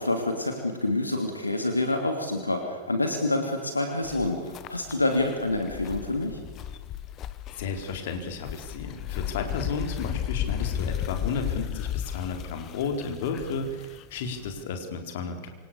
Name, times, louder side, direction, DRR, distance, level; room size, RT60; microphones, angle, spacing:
voice 1, 0.0-6.4, left 2 dB, 80° left, 4 dB, 2.9 m, -27 dB
sound 1, 4.0-14.6, left 11 dB, 35° left, 1.4 m, -34 dB
voice 2, 7.5-15.5, left 4 dB, 55° left, 6 dB, 4.2 m, -33 dB
27.5 x 26.5 x 7.0 m, 1.5 s
figure-of-eight pair, 90°, 0 cm